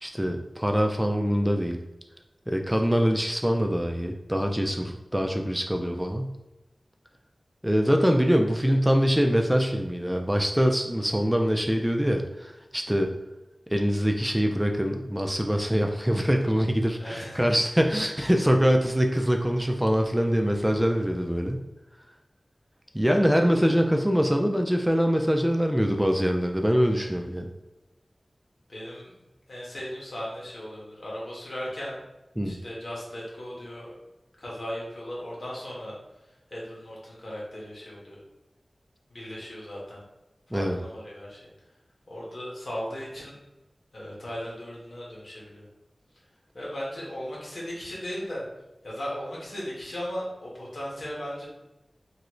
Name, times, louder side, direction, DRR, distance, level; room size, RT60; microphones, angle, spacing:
voice 1, 0.0-1.8 2.5-6.3 7.6-13.1 13.7-21.6 22.9-27.5 32.4-32.6 40.5-40.8, equal, 10° right, 3 dB, 0.3 m, -24 dB
voice 2, 17.0-17.4 23.1-23.3 28.7-29.1 29.5-32.0 32.4-33.9 34.4-36.0 36.2-38.2 39.1-40.0 40.5-41.5 42.1-43.4 43.9-45.6 46.5-48.4 48.8-51.5, equal, 70° left, -5 dB, 1.2 m, -37 dB
3.0 x 2.5 x 3.0 m, 0.99 s
wide cardioid pair, 50°, 0 cm